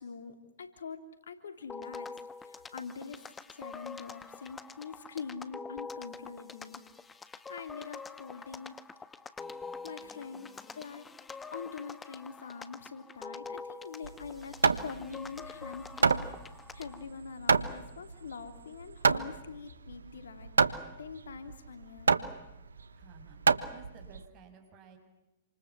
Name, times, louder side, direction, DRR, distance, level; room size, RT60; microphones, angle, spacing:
voice 1, 0.0-2.1 2.4-6.8 7.5-8.8 9.8-11.1 11.5-16.3 16.7-22.2, left 5 dB, 75° left, 8 dB, 3.1 m, -44 dB
sound 1, 1.7-17.1, left 4 dB, 15° left, 1.5 m, -46 dB
Hammer, 14.0-24.3, right 5 dB, 85° right, 1.2 m, -29 dB
voice 2, 22.9-25.0, right 6 dB, 35° right, 5 dB, 7.4 m, -55 dB
28.0 x 26.5 x 7.5 m, 1.0 s
hypercardioid pair, 115°, 0 cm